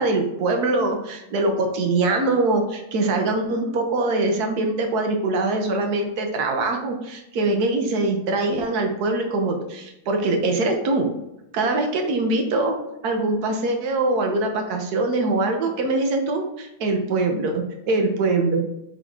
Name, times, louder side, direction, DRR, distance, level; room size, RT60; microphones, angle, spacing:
voice 1, 0.0-11.1 11.5-12.8 13.0-18.8, right 2 dB, 70° right, 4 dB, 1.5 m, -23 dB
7.2 x 4.1 x 3.6 m, 0.86 s
omnidirectional pair, 1.8 m